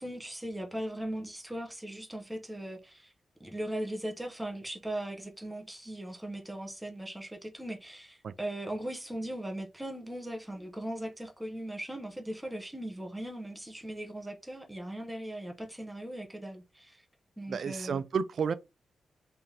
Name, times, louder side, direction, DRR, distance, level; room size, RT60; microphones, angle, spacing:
voice 1, 0.0-3.1 3.4-17.0 17.4-18.0, right 1 dB, 5° right, 0.7 m, -39 dB
voice 2, 17.5-18.5, right 6 dB, 55° right, 0.3 m, -31 dB
3.2 x 2.8 x 3.6 m
wide cardioid pair, 140°, 0 cm